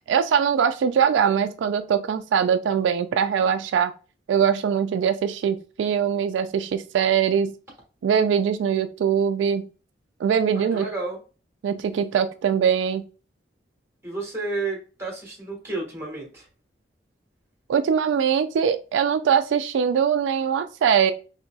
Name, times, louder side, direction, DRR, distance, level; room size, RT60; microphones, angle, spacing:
voice 1, 0.1-3.9 4.3-7.5 8.0-9.7 10.2-10.9 11.6-13.1 17.7-21.1, right 7 dB, 85° right, 0.3 m, -22 dB
voice 2, 10.5-11.2 14.0-16.5, right 3 dB, 15° right, 1.4 m, -31 dB
3.9 x 2.8 x 2.2 m
head